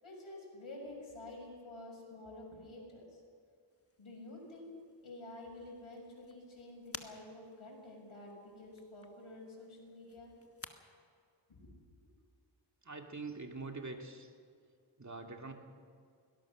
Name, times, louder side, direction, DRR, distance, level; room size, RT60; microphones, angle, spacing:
voice 1, 0.0-3.2 4.0-4.7 5.0-10.3 11.5-11.7 12.0-12.1, left 2 dB, 80° left, -1 dB, 7.0 m, -50 dB
sound 1, 3.7-10.7, left 3 dB, 30° left, 1.4 m, -55 dB
voice 2, 12.8-14.3 15.0-15.5, right 3 dB, 35° right, 2 dB, 2.5 m, -44 dB
22.5 x 18.5 x 6.3 m, 2.2 s
wide cardioid pair, 65°, 48 cm